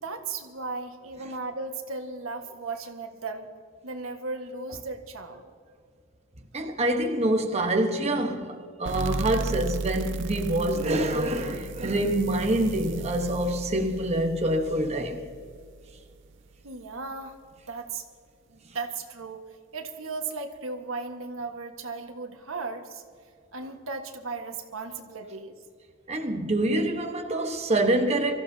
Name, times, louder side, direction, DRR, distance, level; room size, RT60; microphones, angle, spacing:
voice 1, 0.0-3.5 3.8-5.4 16.6-17.4 17.7-18.0 18.5-19.5 19.7-23.0 23.5-25.6, right 3 dB, 85° right, 1.5 m, -36 dB
voice 2, 6.5-15.2 26.1-28.3, right 1 dB, 30° right, 1.2 m, -26 dB
sound 1, 8.9-16.1, right 4 dB, 65° right, 0.7 m, -35 dB
24.5 x 15.0 x 2.8 m
head